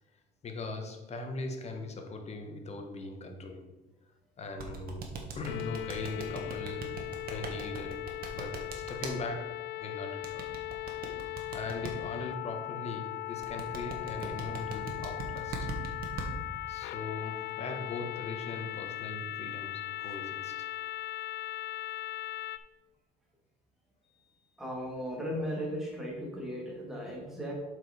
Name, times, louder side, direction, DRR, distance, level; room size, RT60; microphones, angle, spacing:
voice 1, 0.4-3.8 4.4-7.0 7.3-10.5 11.5-15.7 16.7-20.7, left 2 dB, 40° left, 4 dB, 1.4 m, -40 dB
sound 1, 4.6-9.1 10.2-11.9 13.4-16.3, right 4 dB, 60° right, 1.6 m, -39 dB
sound 2, 5.5-22.6, left 17 dB, 90° left, 0.5 m, -39 dB
voice 2, 24.6-27.5, equal, ahead, -3 dB, 2.3 m, -36 dB
7.6 x 5.2 x 5.1 m, 1.1 s
cardioid pair, 110°, 17 cm